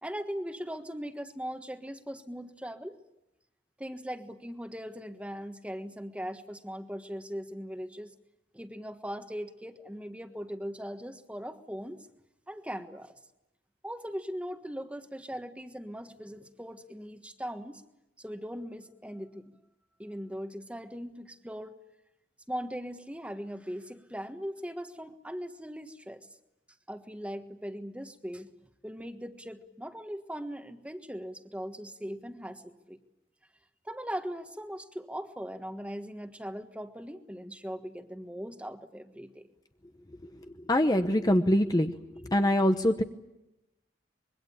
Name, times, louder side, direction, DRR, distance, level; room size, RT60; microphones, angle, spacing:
voice 1, 0.0-3.0 3.8-8.1 8.5-12.1 12.5-13.1 13.8-17.8 18.2-19.6 20.0-21.8 22.5-26.3 26.9-28.5 28.8-33.0 33.8-39.5, equal, 5° right, 8 dB, 1.4 m, -39 dB
voice 2, 40.7-42.0 42.2-43.0, left 1 dB, 20° left, 7 dB, 0.9 m, -24 dB
25.5 x 22.5 x 8.6 m, 0.93 s
head